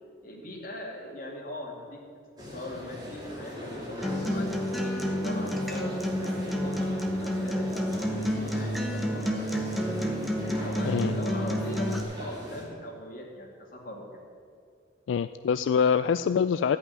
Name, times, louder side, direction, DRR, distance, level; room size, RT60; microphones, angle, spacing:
voice 1, 0.2-2.0 2.4-4.5 4.8-10.3 10.6-14.1, left 1 dB, 45° left, -2 dB, 2.4 m, -41 dB
sound 1, 2.4-12.7, left 1 dB, 20° right, 2.7 m, -40 dB
Acoustic guitar, 4.0-12.0, equal, ahead, 0.9 m, -30 dB
voice 2, 10.8-11.3 15.1-16.8, left 6 dB, 85° left, 12 dB, 0.3 m, -25 dB
14.0 x 5.8 x 9.5 m, 2.3 s
head